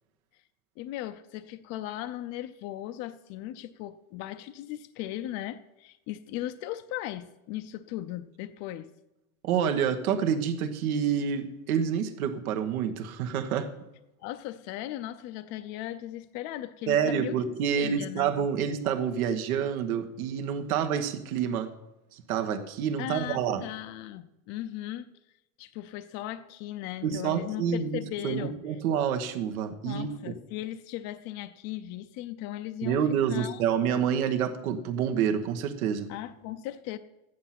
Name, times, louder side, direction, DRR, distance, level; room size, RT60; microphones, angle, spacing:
voice 1, 0.8-8.9 14.2-17.4 17.8-18.3 23.0-25.1 25.6-28.6 29.8-33.0 33.3-33.6 36.1-37.0, left 13 dB, 40° left, 11 dB, 0.5 m, -37 dB
voice 2, 9.4-13.7 16.9-21.7 22.1-23.6 27.0-30.2 32.8-36.1, right 8 dB, 85° right, 7 dB, 1.5 m, -28 dB
13.0 x 9.3 x 5.9 m, 0.94 s
supercardioid pair, 145°, 42 cm